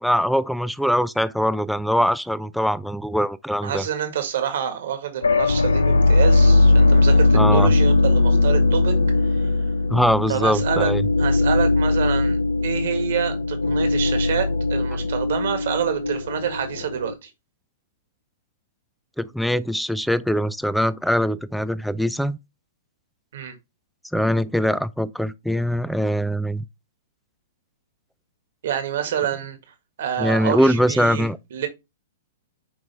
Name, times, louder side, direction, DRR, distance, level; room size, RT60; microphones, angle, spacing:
voice 1, 0.0-3.8 7.3-7.7 9.9-11.0 19.2-22.4 24.1-26.6 30.2-31.4, equal, ahead, 0.4 m, -22 dB
voice 2, 3.6-8.9 9.2-9.5 10.3-10.9 11.2-17.3 23.3-23.5 28.6-29.6 30.0-31.7, right 9 dB, 65° right, 1.7 m, -27 dB
sound 1, 5.2-17.1, left 2 dB, 85° left, 0.6 m, -19 dB
8.8 x 3.2 x 3.3 m
hypercardioid pair, 115°, 0 cm